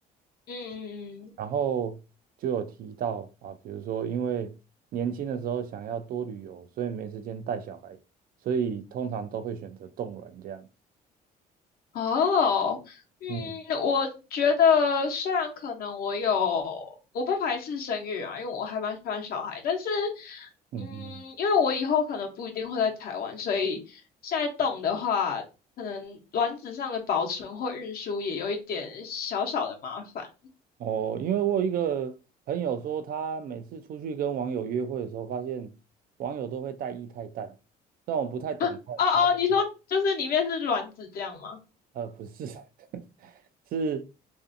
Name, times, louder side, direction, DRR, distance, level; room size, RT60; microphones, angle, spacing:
voice 1, 0.5-1.3 11.9-16.9 17.1-20.5 20.8-25.4 25.8-30.3 38.6-38.7 39.0-41.6, left 6 dB, 60° left, 0.8 m, -28 dB
voice 2, 1.4-2.0 2.4-4.5 4.9-8.0 8.4-10.7 13.3-13.6 20.7-21.2 30.8-32.1 32.5-35.7 36.2-37.5 38.1-39.3 41.9-42.6 42.9-43.3 43.7-44.0, right 7 dB, 60° right, 0.4 m, -31 dB
2.6 x 2.4 x 2.5 m
cardioid pair, 110°, 17 cm